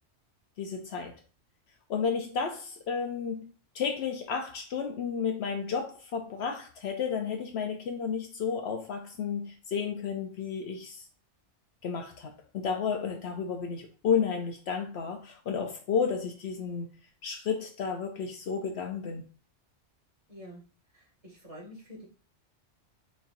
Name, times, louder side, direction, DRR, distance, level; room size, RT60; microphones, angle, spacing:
voice 1, 0.6-1.1 1.9-3.5 3.7-11.0 11.8-16.9 17.2-19.2, left 6 dB, 70° left, 0.8 m, -32 dB
voice 2, 20.3-20.6 20.9-22.1, equal, 30° right, 2.1 m, -47 dB
4.2 x 4.2 x 2.5 m
omnidirectional pair, 1.2 m